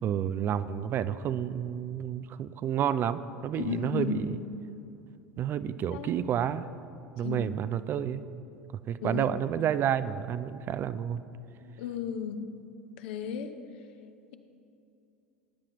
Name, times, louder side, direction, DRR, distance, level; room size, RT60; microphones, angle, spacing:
voice 1, 0.0-4.3 5.4-6.7 7.2-8.2 8.9-11.2, right 9 dB, 35° right, 14 dB, 0.4 m, -30 dB
voice 2, 3.6-4.4 5.9-6.1 7.2-7.4 9.0-9.3 11.6-12.6 13.0-13.6, left 7 dB, 60° left, 8 dB, 0.9 m, -34 dB
18.5 x 9.8 x 3.1 m, 2.7 s
figure-of-eight pair, 80°, 6 cm